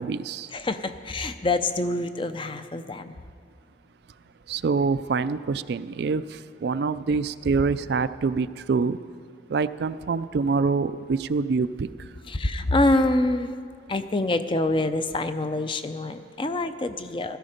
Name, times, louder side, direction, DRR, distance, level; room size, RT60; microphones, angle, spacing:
voice 1, 0.0-0.5 4.5-6.2 6.6-9.0 9.5-11.9, right 4 dB, 55° right, 14 dB, 0.3 m, -25 dB
voice 2, 0.5-3.2 12.3-13.5 13.9-17.4, left 2 dB, 25° left, 10 dB, 0.5 m, -26 dB
15.0 x 13.5 x 5.1 m, 2.1 s
head